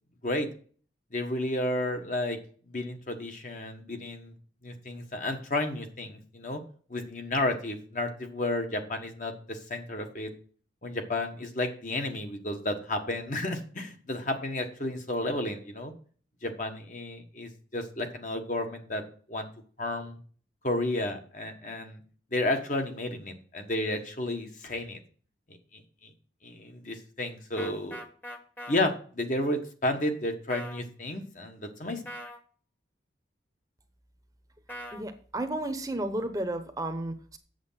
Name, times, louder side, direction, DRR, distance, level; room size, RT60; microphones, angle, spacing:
voice 1, 1.1-2.4 2.7-4.3 4.6-6.6 6.9-10.3 10.8-15.9 16.4-19.0 19.3-19.5 19.8-20.2 20.6-22.0 22.3-25.0 25.5-26.1 26.4-28.0 28.7-32.0, left 1 dB, 45° left, 5 dB, 1.4 m, -32 dB
sound 1, 27.6-28.8 30.5-30.8 32.1-32.4 34.7-35.0, equal, 10° left, 1.1 m, -40 dB
voice 2, 34.9-37.4, right 1 dB, 20° right, 8 dB, 0.9 m, -33 dB
8.1 x 7.3 x 5.7 m, 0.44 s
head